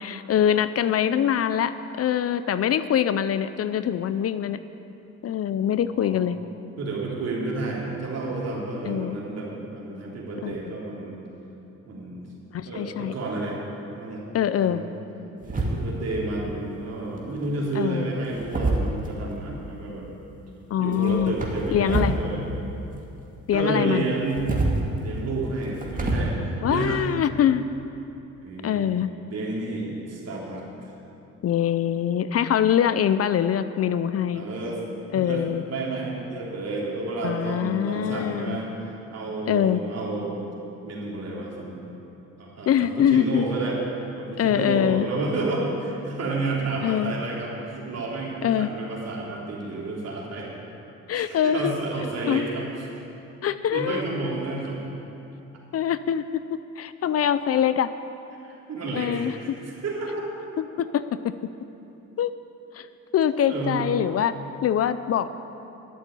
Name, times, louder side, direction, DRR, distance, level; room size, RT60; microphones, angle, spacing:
voice 1, 0.0-4.6 5.2-6.4 8.9-9.2 10.4-10.5 12.5-13.1 14.3-14.8 17.7-18.1 20.7-21.3 21.7-22.1 23.5-24.1 26.6-27.7 28.6-29.1 31.4-34.4 35.1-35.6 37.2-38.6 39.5-39.8 42.7-43.5 44.4-45.1 46.8-47.1 48.4-48.7 51.1-51.7 52.3-52.5 53.4-54.0 55.7-56.4 56.8-57.9 58.9-59.6 60.6-61.0 62.2-62.3 62.7-62.9 63.1-64.3 64.6-65.3, left 9 dB, 50° left, 13 dB, 0.6 m, -23 dB
voice 2, 5.8-6.2 6.8-11.2 11.9-12.3 12.6-13.6 13.9-14.2 14.6-14.9 15.4-20.1 20.8-22.4 23.5-27.1 28.4-28.9 29.3-30.9 34.3-34.8 35.1-38.7 39.1-40.4 40.8-41.8 42.4-43.8 44.2-50.5 51.1-53.0 53.7-54.8 58.4-60.3 63.5-63.8, right 2 dB, 55° right, -3 dB, 3.6 m, -31 dB
sound 1, 15.4-16.1 17.2-17.5 18.3-19.4 20.9-22.2 22.5-23.3 24.2-26.2, right 2 dB, 25° right, 2.2 m, -28 dB
12.0 x 8.3 x 9.0 m, 2.9 s
cardioid pair, 90°, 30 cm